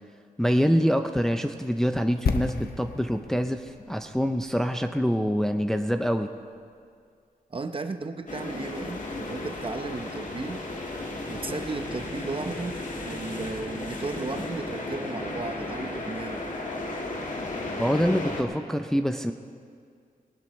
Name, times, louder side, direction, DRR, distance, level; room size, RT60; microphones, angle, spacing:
voice 1, 0.4-6.3 17.8-19.3, equal, 5° left, 6 dB, 0.5 m, -25 dB
sound 1, 2.3-6.2 6.4-6.6, left 5 dB, 80° left, 0.9 m, -34 dB
voice 2, 7.5-10.6 11.3-12.8 13.0-16.4, right 3 dB, 35° right, 7 dB, 0.8 m, -34 dB
sound 2, 8.3-18.4, left 2 dB, 55° left, 1.8 m, -34 dB
19.5 x 19.0 x 3.1 m, 2.2 s
wide cardioid pair, 125°, 16 cm